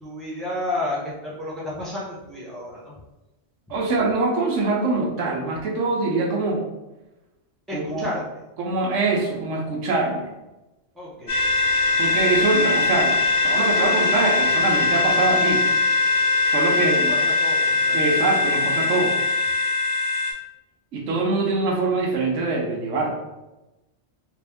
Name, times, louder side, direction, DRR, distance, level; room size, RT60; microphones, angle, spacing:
voice 1, 0.0-2.9 7.7-8.4 10.9-12.0 12.7-12.8 16.8-18.0, left 1 dB, ahead, -6 dB, 0.9 m, -32 dB
voice 2, 3.7-6.6 7.7-8.1 8.6-10.3 12.0-13.2 13.4-15.6 16.5-17.2 17.9-19.1 20.9-23.1, right 3 dB, 90° right, -1 dB, 1.1 m, -23 dB
sound 1, 11.3-20.3, left 3 dB, 30° left, 1.1 m, -21 dB
3.4 x 2.6 x 3.4 m, 1.0 s
omnidirectional pair, 1.2 m